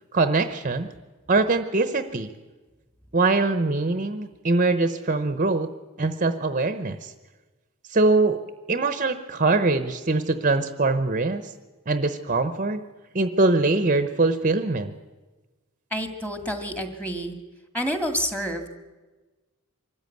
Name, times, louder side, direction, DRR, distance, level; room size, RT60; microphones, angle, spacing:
voice 1, 0.1-0.9 1.3-2.3 3.1-5.7 6.0-7.1 7.9-8.4 8.7-11.5 11.9-12.8 13.1-14.9, right 3 dB, 35° right, 10 dB, 0.9 m, -23 dB
voice 2, 15.9-17.3 17.7-18.7, equal, 5° left, 6 dB, 2.0 m, -28 dB
24.0 x 14.0 x 9.3 m, 1.2 s
head